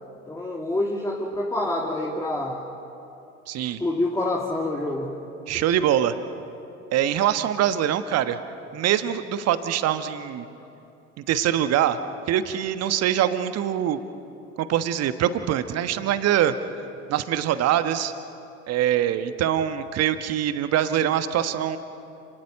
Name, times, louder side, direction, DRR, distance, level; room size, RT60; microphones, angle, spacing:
voice 1, 0.3-2.6 3.6-5.1, left 1 dB, 10° left, -1 dB, 2.4 m, -27 dB
voice 2, 3.5-3.8 5.5-6.1 6.9-8.4 8.7-10.5 11.3-12.0 12.3-14.0 14.6-16.5 17.1-18.1 18.7-21.8, right 11 dB, 45° right, 11 dB, 1.3 m, -23 dB
29.5 x 19.0 x 6.6 m, 2.7 s
figure-of-eight pair, 65°, 36 cm